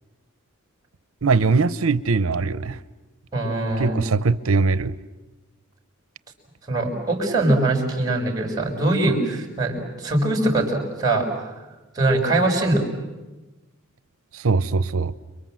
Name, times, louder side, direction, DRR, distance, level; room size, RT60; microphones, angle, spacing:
voice 1, 1.2-2.8 3.8-5.0 14.3-15.1, right 4 dB, 75° right, 0.8 m, -21 dB
voice 2, 3.3-4.0 6.7-11.3 12.0-12.9, right 2 dB, 20° right, 5.7 m, -22 dB
29.5 x 23.0 x 7.7 m
head